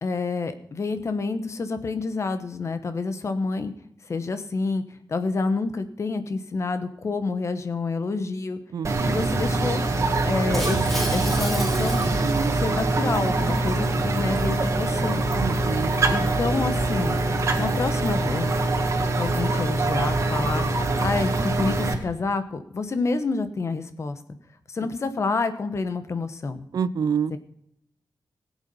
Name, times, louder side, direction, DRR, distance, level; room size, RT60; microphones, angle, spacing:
voice 1, 0.0-3.7 4.1-4.8 5.1-8.6 9.1-9.8 10.2-12.0 12.6-15.2 16.1-17.2 17.6-18.5 19.1-20.7 21.0-24.2 24.7-26.6 27.3-27.4, left 3 dB, 40° left, 10 dB, 1.0 m, -28 dB
voice 2, 8.7-9.2 15.4-15.9 26.7-27.3, right 7 dB, 60° right, 18 dB, 0.4 m, -27 dB
sound 1, 8.8-21.9, right 2 dB, 40° right, 1.7 m, -24 dB
Shatter, 10.5-12.9, equal, ahead, 3.0 m, -34 dB
18.0 x 8.2 x 5.5 m, 0.76 s
wide cardioid pair, 180°, 7 cm